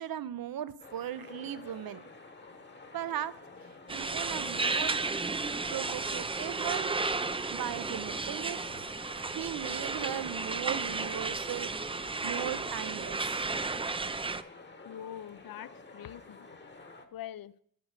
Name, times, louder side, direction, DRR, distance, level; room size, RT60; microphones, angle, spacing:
voice 1, 0.0-2.0 2.9-3.3 3.9-4.9 5.7-7.2 7.5-8.6 9.3-11.7 12.2-13.4, right 10 dB, 65° right, 16 dB, 0.6 m, -37 dB
sound 1, 0.8-17.1, left 3 dB, 30° left, 1.0 m, -50 dB
sound 2, 3.9-14.4, right 3 dB, 15° right, 0.3 m, -33 dB
voice 2, 14.8-16.5 17.1-17.5, left 11 dB, 65° left, 18 dB, 0.5 m, -43 dB
11.0 x 5.1 x 8.0 m, 0.67 s
wide cardioid pair, 105°, 38 cm